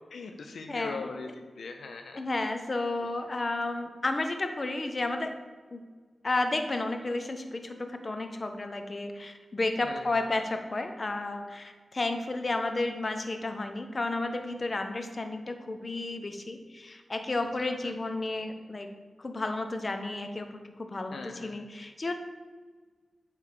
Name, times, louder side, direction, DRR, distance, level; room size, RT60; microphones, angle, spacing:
voice 1, 0.1-2.2 3.0-3.1 9.8-10.1 17.6-17.9 21.1-21.6, left 4 dB, 80° left, 5 dB, 0.6 m, -41 dB
voice 2, 0.7-1.1 2.1-5.3 5.7-5.8 6.2-18.9 19.2-20.5 20.8-22.1, left 2 dB, 40° left, 6 dB, 0.9 m, -32 dB
9.5 x 3.6 x 6.7 m, 1.5 s
cardioid pair, 60°, 0 cm